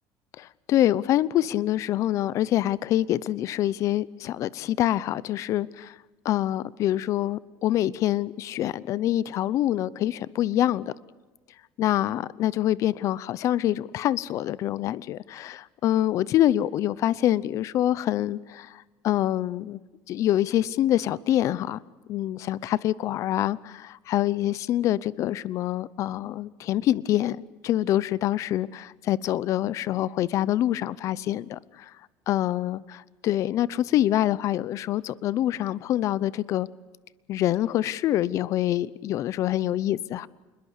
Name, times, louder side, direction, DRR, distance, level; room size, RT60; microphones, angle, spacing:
voice 1, 0.4-5.9 6.2-10.9 11.8-19.8 20.1-21.8 22.1-27.4 27.6-31.9 32.3-36.7 37.3-40.3, left 13 dB, 50° left, 0.7 m, -25 dB
28.0 x 21.0 x 8.2 m
cardioid pair, 140°, 7 cm